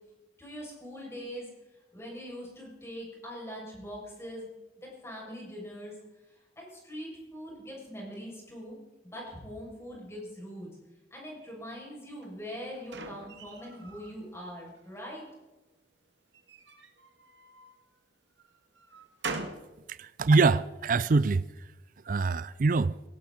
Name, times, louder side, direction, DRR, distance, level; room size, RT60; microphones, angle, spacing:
voice 1, 0.4-1.5 1.9-4.5 4.8-5.9 6.6-8.8 9.0-10.7 11.1-15.2, equal, 15° left, 7.0 m, -42 dB
sound 1, 12.2-14.2 14.6-15.3 16.3-17.8 18.4-19.7, right 4 dB, 85° right, 2.0 m, -42 dB
voice 2, 19.9-21.4 22.1-22.9, right 3 dB, 50° right, 0.4 m, -24 dB
18.0 x 18.0 x 4.3 m
head